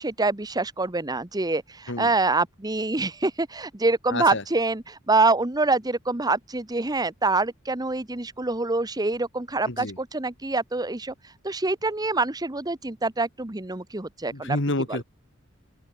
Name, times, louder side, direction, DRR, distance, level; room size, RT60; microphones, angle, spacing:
voice 1, 0.0-11.1 11.4-14.6 14.9-15.0, right 3 dB, 20° right, 1.1 m, -25 dB
voice 2, 4.1-4.4 9.7-10.0 14.3-15.0, left 2 dB, 60° left, 2.4 m, -29 dB
open air
head